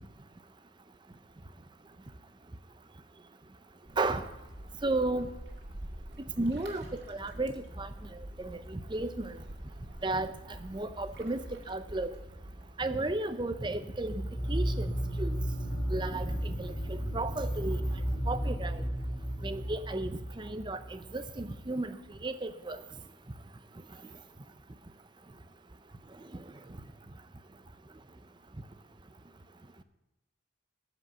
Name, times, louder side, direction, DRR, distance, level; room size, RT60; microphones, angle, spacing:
sound 1, 3.8-12.7, right 1 dB, 60° right, 1.9 m, -47 dB
voice 1, 4.0-4.3 4.8-5.3 6.4-7.9 8.4-9.4 10.0-10.3 10.6-12.1 12.8-14.2 14.5-14.9 15.2-15.3 15.9-17.8 18.3-18.8 19.4-22.0 22.2-22.8, right 2 dB, 25° right, 11 dB, 0.6 m, -33 dB
sound 2, 14.0-21.3, equal, 15° left, 2.6 m, -33 dB
13.5 x 5.2 x 8.5 m, 0.97 s
head